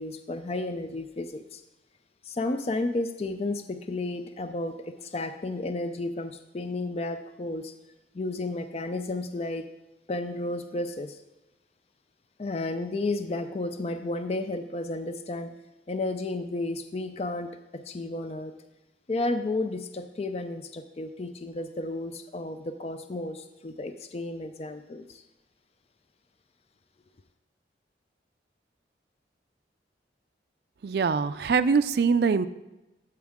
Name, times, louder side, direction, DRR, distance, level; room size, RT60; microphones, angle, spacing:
voice 1, 0.0-1.6 2.2-7.7 8.1-9.7 10.1-11.2 12.4-15.5 15.9-18.5 19.1-25.2, left 2 dB, 35° left, 8 dB, 0.4 m, -32 dB
voice 2, 30.8-32.5, right 5 dB, 60° right, 13 dB, 0.4 m, -23 dB
13.5 x 4.8 x 3.6 m, 1.0 s
head